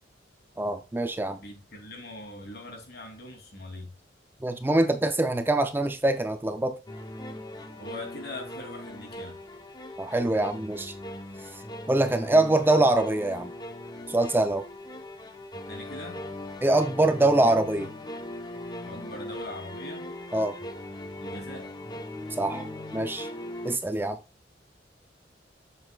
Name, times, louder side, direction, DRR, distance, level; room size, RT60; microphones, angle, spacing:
voice 1, 0.6-1.4 4.4-6.8 10.0-10.9 11.9-13.5 14.1-14.7 16.6-17.9 20.3-20.6 22.3-23.3 23.6-24.2, right 2 dB, 10° right, 0.5 m, -24 dB
voice 2, 1.4-3.9 7.5-9.4 15.7-16.2 18.8-20.1 21.2-21.7, left 2 dB, 60° left, 2.9 m, -42 dB
sound 1, 6.9-23.8, left 1 dB, 25° left, 0.9 m, -39 dB
7.7 x 6.8 x 2.3 m
head